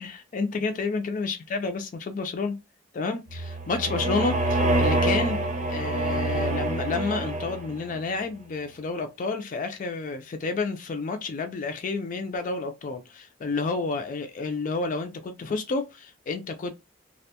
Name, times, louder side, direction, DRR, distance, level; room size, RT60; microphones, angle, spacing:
voice 1, 0.0-2.6 2.9-5.4 5.7-16.7, left 4 dB, 40° left, 0.3 m, -30 dB
sound 1, 3.3-7.9, right 2 dB, 35° right, 0.6 m, -26 dB
2.5 x 2.1 x 2.7 m
head